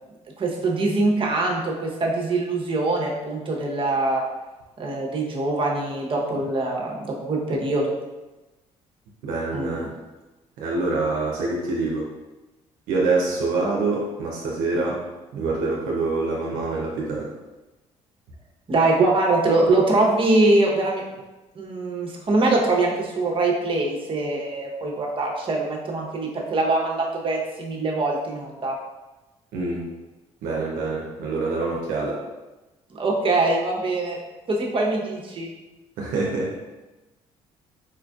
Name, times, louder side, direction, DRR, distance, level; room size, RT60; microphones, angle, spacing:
voice 1, 0.4-4.2 4.8-7.9 9.5-9.9 18.7-21.0 21.6-28.7 33.0-34.2 34.5-35.5, right 2 dB, 40° right, -1 dB, 0.8 m, -23 dB
voice 2, 9.2-9.9 10.6-12.1 12.9-15.0 15.3-17.3 29.5-29.8 30.4-32.2 36.0-36.5, right 3 dB, 85° right, -2 dB, 0.5 m, -25 dB
4.3 x 2.4 x 2.3 m, 1.1 s
supercardioid pair, 65°, 14 cm